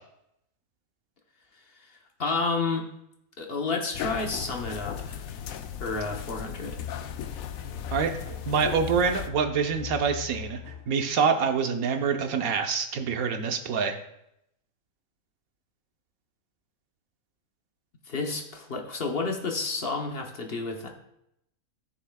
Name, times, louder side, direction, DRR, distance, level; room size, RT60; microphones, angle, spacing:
voice 1, 2.2-2.9 3.4-5.2 5.8-6.8 18.1-20.9, left 3 dB, 45° left, 2 dB, 1.1 m, -30 dB
sound 1, 3.9-9.3, left 8 dB, 80° left, 1.0 m, -37 dB
sound 2, 6.8-11.0, left 9 dB, 70° right, 3.6 m, -41 dB
voice 2, 8.5-10.6 10.9-14.0, right 6 dB, 85° right, 6 dB, 1.3 m, -26 dB
15.0 x 6.4 x 2.3 m, 0.80 s
omnidirectional pair, 1.4 m